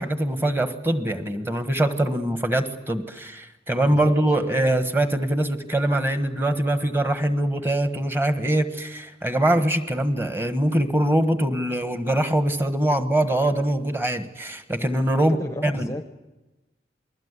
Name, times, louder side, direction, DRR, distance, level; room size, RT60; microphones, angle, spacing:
voice 1, 0.0-15.4 15.6-15.9, right 1 dB, 10° right, 8 dB, 1.4 m, -23 dB
voice 2, 3.9-4.2 4.5-4.6 15.2-16.1, left 1 dB, 15° left, 8 dB, 0.8 m, -33 dB
28.0 x 20.5 x 8.2 m, 1.1 s
head